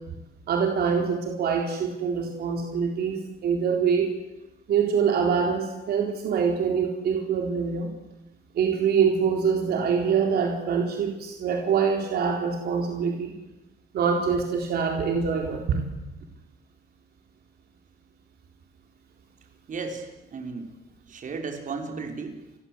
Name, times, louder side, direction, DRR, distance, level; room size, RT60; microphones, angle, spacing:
voice 1, 0.5-4.1 4.7-7.9 8.5-13.3 13.9-15.8, right 6 dB, 75° right, 2 dB, 4.3 m, -25 dB
voice 2, 19.7-20.7 21.1-22.4, right 4 dB, 50° right, 4 dB, 5.7 m, -34 dB
30.0 x 21.5 x 8.3 m, 0.96 s
cardioid pair, 105°, 16 cm